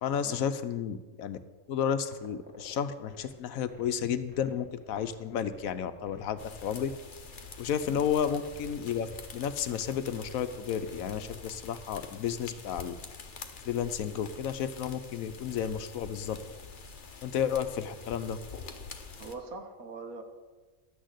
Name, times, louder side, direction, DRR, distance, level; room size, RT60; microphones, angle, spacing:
voice 1, 0.0-1.4 1.7-6.9 7.6-12.9 13.6-16.4 17.2-18.4, left 8 dB, 75° left, 11 dB, 1.1 m, -32 dB
sound 1, 2.0-11.3, equal, 5° right, 1.6 m, -55 dB
sound 2, 6.4-19.4, left 4 dB, 40° left, 1.0 m, -46 dB
voice 2, 19.2-20.2, right 3 dB, 80° right, 5 dB, 1.8 m, -43 dB
12.0 x 6.4 x 8.2 m, 1.3 s
omnidirectional pair, 1.5 m